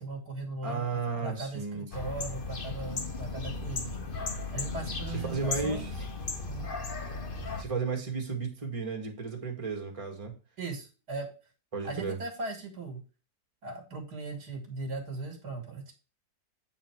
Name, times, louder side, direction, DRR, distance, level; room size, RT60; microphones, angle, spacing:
voice 1, 0.0-0.8 1.2-4.0 4.5-5.9 6.4-6.7 10.6-11.3 11.8-13.0 13.6-15.9, right 3 dB, 70° right, 4 dB, 2.7 m, -38 dB
voice 2, 0.6-2.1 5.2-5.9 7.6-10.3 11.7-12.2, right 4 dB, 20° right, 1 dB, 1.9 m, -34 dB
sound 1, 1.9-7.6, left 3 dB, 35° left, 1.2 m, -36 dB
8.5 x 4.2 x 4.6 m, 0.33 s
omnidirectional pair, 1.8 m